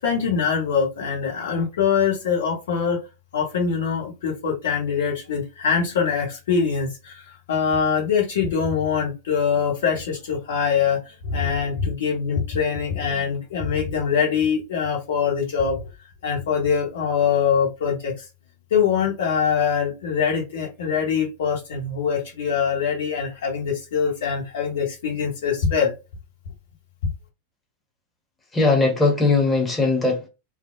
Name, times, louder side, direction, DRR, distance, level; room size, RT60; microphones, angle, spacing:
voice 1, 0.0-3.0 3.3-15.8 16.2-18.1 18.7-25.9, left 6 dB, 60° left, 1.1 m, -23 dB
voice 2, 28.5-30.3, left 3 dB, 10° left, 1.2 m, -19 dB
3.2 x 2.5 x 2.4 m
figure-of-eight pair, 90°, 0 cm